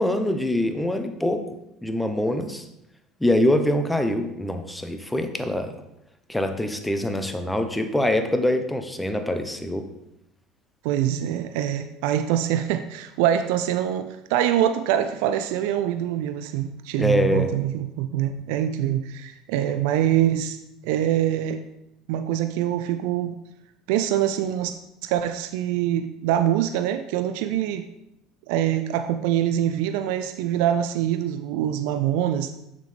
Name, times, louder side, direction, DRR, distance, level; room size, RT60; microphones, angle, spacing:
voice 1, 0.0-1.6 1.8-2.6 3.2-5.8 6.3-9.9 17.0-17.5, left 1 dB, 5° left, 7 dB, 0.9 m, -24 dB
voice 2, 10.8-20.6 20.8-21.6 22.1-23.4 23.9-24.8 25.0-27.8 28.5-32.5, right 11 dB, 75° right, 8 dB, 0.4 m, -24 dB
6.7 x 6.7 x 3.3 m, 0.84 s
hypercardioid pair, 80°, 0 cm